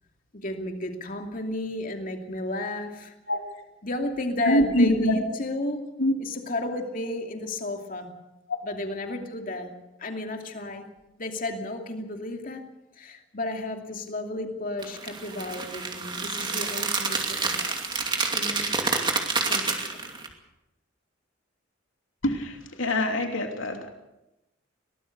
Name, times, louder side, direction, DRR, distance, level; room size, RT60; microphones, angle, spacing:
voice 1, 0.3-3.1 3.8-8.1 8.6-10.9 11.2-12.6 13.0-17.7 18.3-18.7 19.5-20.1, left 1 dB, 45° left, 2.7 m, -33 dB
voice 2, 4.4-5.2 6.0-6.1 22.2-23.9, left 1 dB, 85° left, 3.0 m, -24 dB
sound 1, 14.8-20.3, right 4 dB, 25° right, 2.6 m, -28 dB
23.0 x 18.5 x 6.7 m
head